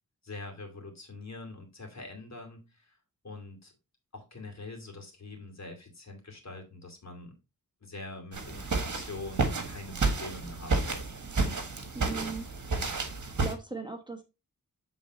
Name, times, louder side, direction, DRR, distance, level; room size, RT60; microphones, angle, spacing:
voice 1, 0.2-3.0 3.2-3.7 4.1-7.3 7.8-11.0, left 2 dB, 50° left, 2 dB, 2.4 m, -44 dB
sound 1, 8.3-13.5, right 3 dB, 55° right, 1.5 m, -31 dB
voice 2, 11.9-12.5 13.4-14.2, right 4 dB, 15° right, 4 dB, 1.2 m, -38 dB
7.7 x 3.9 x 4.0 m, 0.27 s
wide cardioid pair, 70°, 35 cm